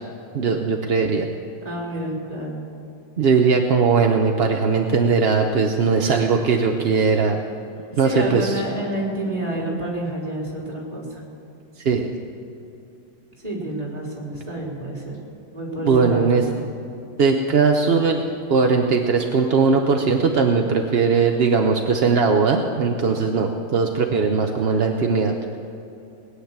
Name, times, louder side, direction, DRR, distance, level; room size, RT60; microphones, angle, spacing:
voice 1, 0.3-1.3 3.2-7.4 8.0-8.6 11.8-12.1 15.8-16.4 17.2-18.2 18.5-25.6, right 5 dB, 50° right, 3 dB, 0.8 m, -19 dB
voice 2, 1.6-2.6 8.0-11.2 13.4-15.2 15.5-16.6, right 1 dB, 20° right, -4 dB, 3.8 m, -29 dB
20.0 x 9.8 x 7.3 m, 2.7 s
omnidirectional pair, 1.9 m